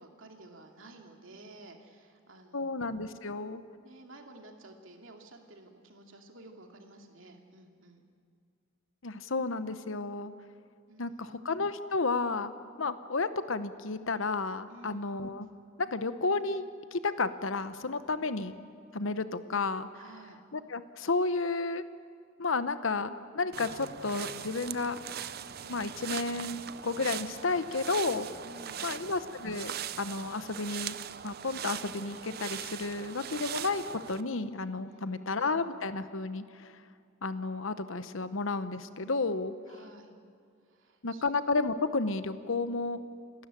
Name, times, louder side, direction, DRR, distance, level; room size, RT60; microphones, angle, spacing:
voice 1, 0.0-2.8 3.8-8.0 10.9-11.4 14.7-15.1 19.9-20.4 28.4-29.0 34.9-35.3 39.7-40.1 40.6-41.2, right 2 dB, 75° right, 3 dB, 2.5 m, -52 dB
voice 2, 2.5-3.6 9.0-10.3 11.0-12.5 12.8-15.5 15.9-16.6 16.9-18.5 18.9-19.9 20.5-21.8 22.4-25.0 25.6-28.3 28.8-31.0 31.2-33.8 34.1-36.7 37.2-39.5 41.0-43.0, left 3 dB, 75° left, 12 dB, 1.0 m, -32 dB
sound 1, 23.5-34.2, right 9 dB, 50° right, 0.6 m, -40 dB
29.0 x 13.0 x 9.1 m, 2.3 s
head